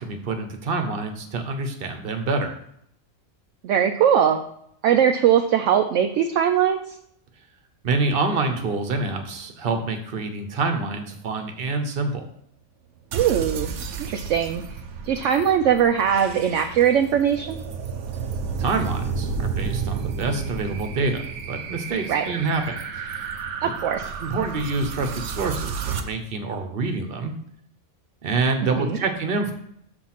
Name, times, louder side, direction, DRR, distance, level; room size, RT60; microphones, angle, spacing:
voice 1, 0.0-2.5 7.8-12.3 18.6-21.2 21.5-22.8 23.6-23.7 24.2-27.3 28.2-29.5, right 3 dB, 45° right, 6 dB, 1.1 m, -26 dB
voice 2, 3.6-4.4 4.8-7.0 13.1-14.8 15.0-17.6 22.1-22.3 23.6-24.1 28.6-29.0, right 9 dB, 70° right, 5 dB, 0.9 m, -21 dB
sound 1, 13.1-26.0, right 5 dB, 90° right, 1.2 m, -31 dB
6.9 x 4.5 x 5.8 m, 0.71 s
omnidirectional pair, 1.4 m